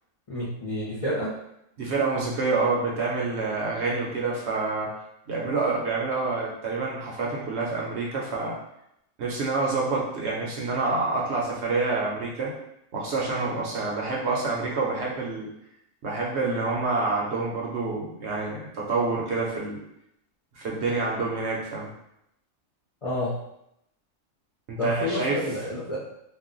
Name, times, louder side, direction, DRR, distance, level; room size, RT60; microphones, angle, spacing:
voice 1, 0.3-1.3 23.0-23.3 24.8-26.0, left 1 dB, 40° left, -8 dB, 0.5 m, -29 dB
voice 2, 1.8-4.9 5.3-8.6 9.2-12.5 12.9-15.5 16.0-19.8 20.6-21.9 24.7-25.4, right 3 dB, 65° right, -3 dB, 0.8 m, -27 dB
2.3 x 2.1 x 3.7 m, 0.80 s
omnidirectional pair, 1.4 m